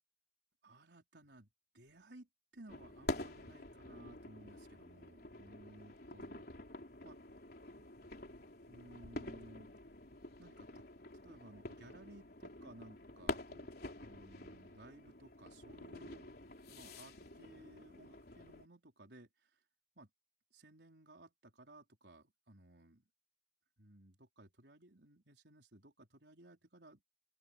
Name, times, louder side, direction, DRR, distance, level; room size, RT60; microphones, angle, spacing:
voice 1, 0.6-1.5 1.7-6.5 7.0-7.2 7.8-7.9 8.6-9.7 10.4-10.8 11.2-13.7 14.0-19.5 20.0-20.1 20.5-23.0 23.8-27.1, right 1 dB, 75° right, 4.5 m, -59 dB
sound 1, 2.7-18.7, left 2 dB, 60° left, 4.0 m, -48 dB
open air
head